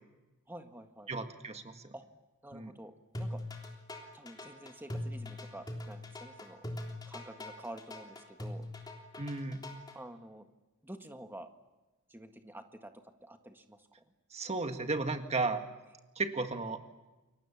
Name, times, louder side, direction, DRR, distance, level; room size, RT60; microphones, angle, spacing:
voice 1, 0.5-1.1 1.9-2.0 2.4-2.9 3.2-3.4 4.1-6.7 7.1-8.7 9.9-10.5 10.8-11.5 12.1-12.9 13.2-13.9, right 1 dB, 10° right, 6 dB, 1.7 m, -48 dB
voice 2, 1.1-1.9 2.5-2.7 9.2-9.6 14.3-15.6 16.2-16.8, right 3 dB, 30° right, 6 dB, 1.7 m, -34 dB
sound 1, 3.1-10.0, left 1 dB, 20° left, 3.5 m, -41 dB
29.5 x 23.0 x 7.3 m, 1.1 s
head